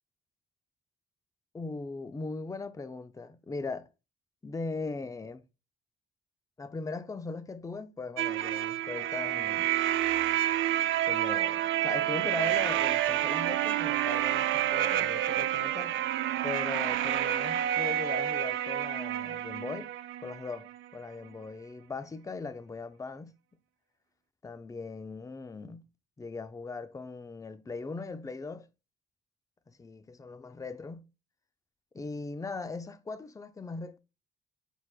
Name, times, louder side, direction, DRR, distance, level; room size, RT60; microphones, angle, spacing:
voice 1, 1.5-3.9 4.4-5.4 6.6-9.7 11.1-16.0 16.4-19.9 20.2-23.3 24.4-25.8 26.2-28.7 29.7-31.0 31.9-34.0, left 3 dB, 15° left, 0.5 m, -39 dB
sound 1, 8.2-20.8, right 13 dB, 80° right, 0.5 m, -29 dB
9.8 x 4.3 x 2.4 m
cardioid pair, 90°, 20 cm